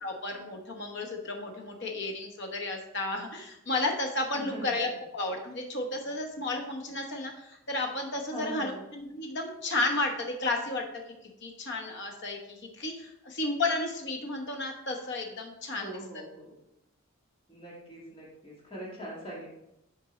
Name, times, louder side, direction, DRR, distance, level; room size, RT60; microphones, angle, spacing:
voice 1, 0.0-11.0 11.4-15.9, left 2 dB, 55° left, 2 dB, 1.1 m, -33 dB
voice 2, 4.3-4.8 8.3-8.8 15.8-16.5 17.5-19.5, equal, 25° left, -5 dB, 2.2 m, -42 dB
6.8 x 4.5 x 4.1 m, 0.85 s
head